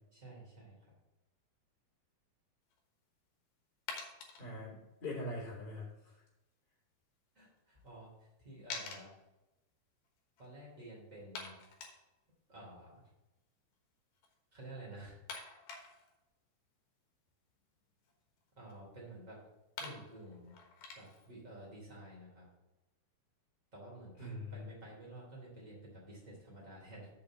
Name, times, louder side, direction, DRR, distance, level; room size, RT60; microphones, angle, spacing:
voice 1, 0.1-0.9 7.3-8.1 8.4-9.1 10.4-11.6 12.5-12.9 14.5-15.1 18.6-19.4 19.8-20.5 20.9-22.5 23.7-27.1, right 1 dB, 20° right, -4 dB, 2.9 m, -51 dB
sound 1, 2.7-2.8 3.9-4.4 7.6-7.7 7.9-8.0 8.7-9.0 10.0-10.1 10.4-10.5 11.3-12.0 14.2-14.3 15.3-16.2 17.6-18.7 19.5-19.6 19.8-21.3, left 4 dB, 65° left, 2.5 m, -46 dB
voice 2, 4.4-6.1 24.2-24.7, left 1 dB, 25° left, -7 dB, 3.1 m, -43 dB
6.6 x 5.3 x 7.1 m, 0.99 s
omnidirectional pair, 4.5 m